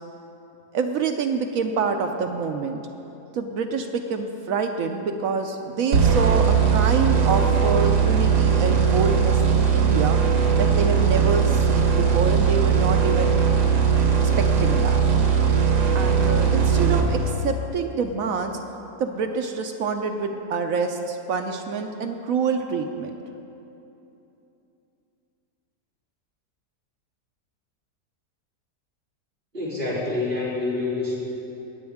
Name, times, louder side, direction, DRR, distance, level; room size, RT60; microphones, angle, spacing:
voice 1, 0.7-2.8 3.3-10.2 10.6-13.3 14.4-15.0 15.9-18.6 19.0-23.2, right 5 dB, 70° right, 5 dB, 0.9 m, -26 dB
sound 1, 5.9-17.6, right 6 dB, 85° right, 1.6 m, -19 dB
voice 2, 29.5-31.2, left 3 dB, 35° right, -8 dB, 3.0 m, -27 dB
19.0 x 7.9 x 3.5 m, 2.9 s
omnidirectional pair, 1.7 m